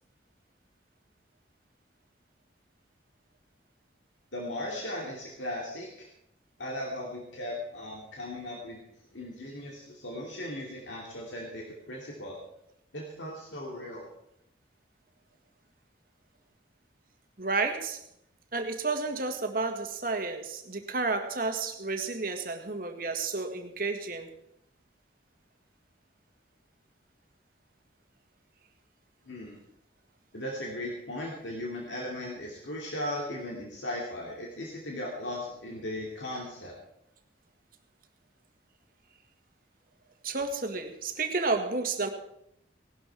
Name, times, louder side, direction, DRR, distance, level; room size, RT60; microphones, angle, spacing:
voice 1, 4.3-6.1 6.6-8.8 9.1-12.4 12.9-14.1 29.3-29.6 30.3-36.7, left 1 dB, 90° left, -1 dB, 2.5 m, -37 dB
voice 2, 17.4-18.0 18.5-24.3 40.2-42.1, right 3 dB, 50° right, 5 dB, 1.7 m, -31 dB
18.5 x 12.0 x 4.6 m, 0.77 s
head